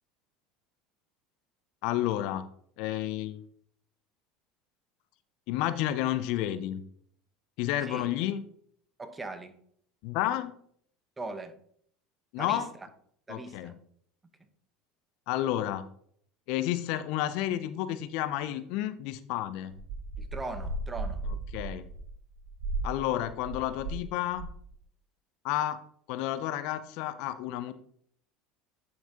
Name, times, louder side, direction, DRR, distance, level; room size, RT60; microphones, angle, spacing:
voice 1, 1.8-2.5 2.8-3.4 5.5-6.8 7.6-8.4 10.0-10.5 12.3-12.7 13.3-13.8 15.3-15.9 16.5-19.7 21.5-21.9 22.8-24.5 25.4-25.8 26.1-27.7, left 13 dB, 65° left, 0.5 m, -31 dB
voice 2, 9.0-9.5 11.2-11.6 12.4-12.6 13.3-13.7 20.2-21.2, right 2 dB, 20° right, 1.2 m, -39 dB
sound 1, 19.7-24.1 24.3-24.7, right 2 dB, 60° right, 3.3 m, -36 dB
10.5 x 5.8 x 2.9 m
hypercardioid pair, 75°, 0 cm